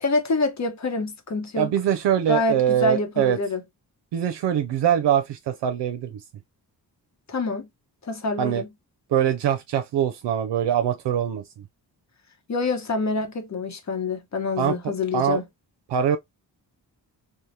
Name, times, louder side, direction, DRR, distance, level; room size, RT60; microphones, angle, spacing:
voice 1, 0.0-1.7 2.3-3.6 7.3-7.7 8.0-8.7 12.5-15.4, left 3 dB, 40° left, 0.9 m, -26 dB
voice 2, 1.5-3.4 4.1-6.2 8.4-8.6 9.1-11.4 14.6-15.4 15.9-16.2, right 9 dB, 75° right, 0.5 m, -23 dB
3.1 x 2.1 x 2.6 m
cardioid pair, 60°, 42 cm